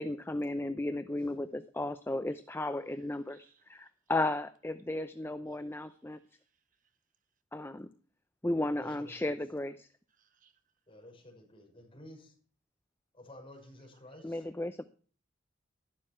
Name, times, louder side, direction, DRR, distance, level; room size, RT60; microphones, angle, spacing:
voice 1, 0.0-6.2 7.5-7.9 8.4-9.9 14.2-14.8, left 2 dB, 10° left, 0.6 m, -34 dB
voice 2, 2.9-3.7 5.5-5.7 6.1-7.0 10.1-10.6 14.1-14.2, right 7 dB, 45° right, 1.3 m, -70 dB
voice 3, 8.8-9.2 10.9-12.4 13.1-14.4, left 1 dB, 30° left, 5.4 m, -52 dB
12.0 x 12.0 x 4.4 m
head